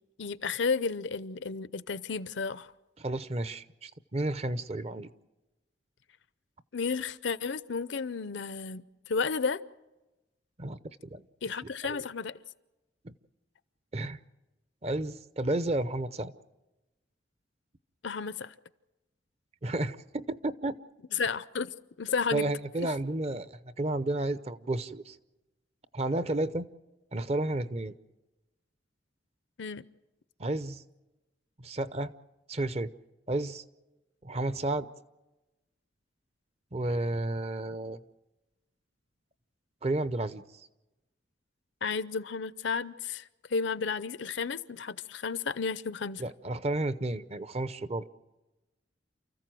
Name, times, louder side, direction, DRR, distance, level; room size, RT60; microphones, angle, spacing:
voice 1, 0.2-2.7 6.7-9.6 11.4-12.4 18.0-18.5 21.1-22.5 22.8-22.9 29.6-29.8 41.8-46.2, left 5 dB, 70° left, 0.6 m, -32 dB
voice 2, 3.0-5.1 10.6-10.8 11.1-11.2 11.8-12.0 13.0-13.1 13.9-14.2 14.8-16.3 19.6-20.8 22.3-25.2 25.9-26.7 27.1-27.9 30.4-30.8 31.6-32.1 32.5-32.9 33.3-33.6 34.2-34.9 36.7-38.0 39.8-40.4 46.2-48.1, right 2 dB, 35° right, 0.6 m, -32 dB
29.0 x 14.5 x 7.7 m
head